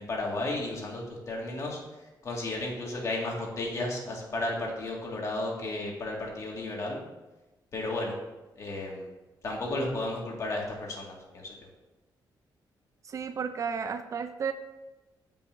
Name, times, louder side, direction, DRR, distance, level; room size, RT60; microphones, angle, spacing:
voice 1, 0.0-1.8 2.2-7.0 7.7-8.1 8.6-9.1 9.4-11.6, left 2 dB, 40° left, -2 dB, 2.0 m, -33 dB
voice 2, 13.1-14.5, right 6 dB, 45° right, 9 dB, 0.4 m, -33 dB
15.0 x 5.5 x 2.7 m, 1.1 s
wide cardioid pair, 155°, 8 cm